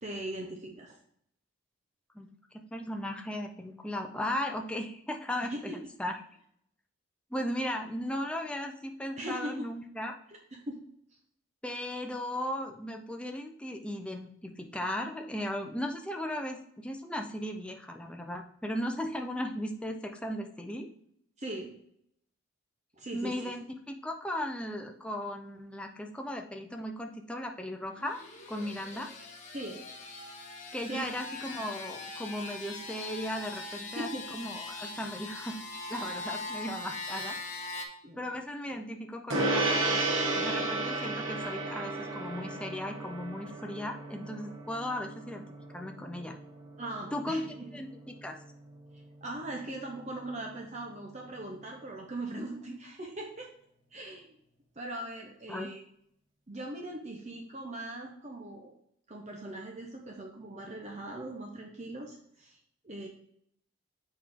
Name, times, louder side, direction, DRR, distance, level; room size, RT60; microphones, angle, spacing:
voice 1, 0.0-1.0 5.5-5.8 9.2-9.5 10.3-10.8 21.4-21.7 23.0-23.5 29.5-29.8 30.8-31.1 33.9-34.3 37.8-38.3 46.8-47.7 49.2-53.5 53.9-54.3 54.8-55.8 56.5-58.7 59.1-62.6 62.8-63.1, right 1 dB, 35° right, 1 dB, 0.7 m, -40 dB
voice 2, 2.1-5.7 6.0-6.2 7.3-10.2 11.6-20.9 23.1-28.2 28.5-29.1 30.7-35.6 35.9-37.4 38.2-40.0 40.3-45.4 45.7-46.4 47.1-48.4 55.5-55.7, left 1 dB, 5° left, 2 dB, 0.5 m, -36 dB
sound 1, 27.9-37.9, left 2 dB, 35° left, 1.0 m, -41 dB
Gong, 39.3-49.0, right 2 dB, 75° right, 1.5 m, -34 dB
7.3 x 4.4 x 3.6 m, 0.70 s
head